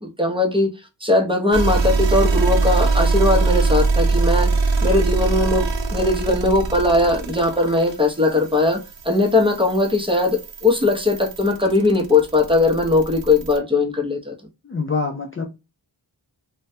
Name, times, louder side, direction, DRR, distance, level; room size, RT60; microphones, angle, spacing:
voice 1, 0.0-0.7 1.0-4.5 4.8-14.3, left 2 dB, 10° right, 0.7 m, -19 dB
sound 1, 1.5-13.6, right 3 dB, 75° right, 0.6 m, -23 dB
voice 2, 14.6-15.5, left 4 dB, 30° left, 0.4 m, -25 dB
2.2 x 2.1 x 2.6 m
wide cardioid pair, 60°, 45 cm